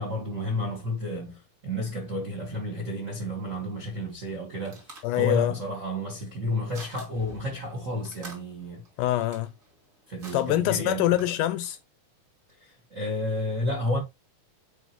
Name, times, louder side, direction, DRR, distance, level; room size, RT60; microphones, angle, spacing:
voice 1, 0.0-8.8 10.1-11.1 12.6-14.0, left 1 dB, 50° right, 0.9 m, -31 dB
sound 1, 4.1-11.8, right 2 dB, 30° right, 1.7 m, -50 dB
voice 2, 5.0-5.5 9.0-9.5 10.3-11.8, left 14 dB, 80° left, 1.9 m, -25 dB
9.2 x 3.6 x 2.9 m
omnidirectional pair, 4.0 m